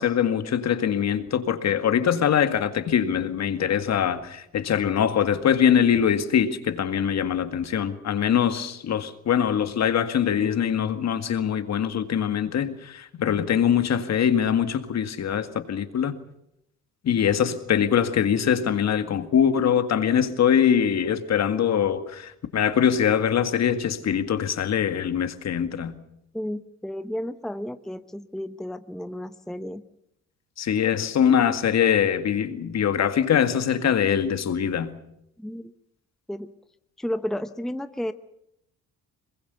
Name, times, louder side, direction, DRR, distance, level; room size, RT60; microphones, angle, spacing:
voice 1, 0.0-16.1 17.0-25.9 30.6-34.9, left 8 dB, 55° left, 2.0 m, -23 dB
voice 2, 26.3-29.8 35.4-35.7 36.3-36.5 37.0-38.1, left 1 dB, ahead, 0.9 m, -32 dB
23.0 x 21.0 x 6.9 m
cardioid pair, 85°, 32 cm